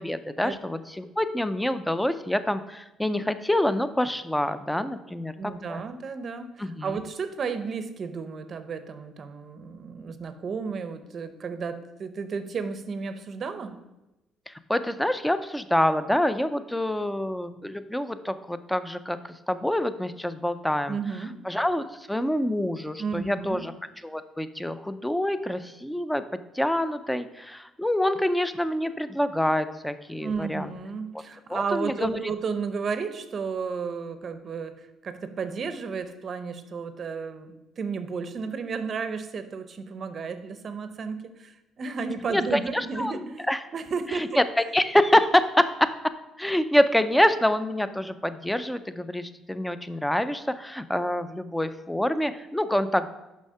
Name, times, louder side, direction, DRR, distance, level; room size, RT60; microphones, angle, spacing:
voice 1, 0.0-5.8 6.6-7.0 14.5-23.7 24.0-26.2 26.5-30.7 31.5-32.2 42.3-43.6 44.1-44.4 44.7-45.9 46.4-53.1, left 1 dB, 5° left, 12 dB, 0.4 m, -26 dB
voice 2, 5.4-13.8 20.9-21.4 23.0-23.6 30.2-44.4, right 5 dB, 45° right, 10 dB, 0.6 m, -33 dB
6.2 x 5.6 x 5.5 m, 0.99 s
cardioid pair, 105°, 0 cm